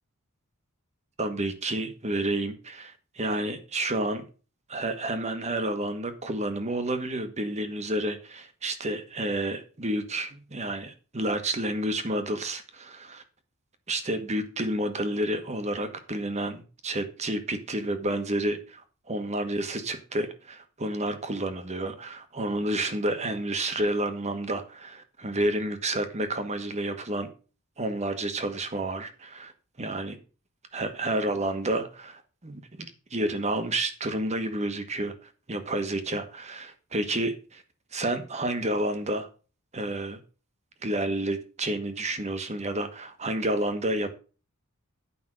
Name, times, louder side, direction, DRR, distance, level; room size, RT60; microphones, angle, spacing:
voice 1, 1.2-4.2 4.7-13.2 13.9-18.8 19.1-27.3 27.8-29.5 29.8-30.2 30.7-32.8 33.1-35.1 35.5-37.6 37.9-39.3 39.7-40.2 40.8-44.1, right 1 dB, 30° right, 8 dB, 1.3 m, -30 dB
9.8 x 5.3 x 6.3 m, 0.35 s
head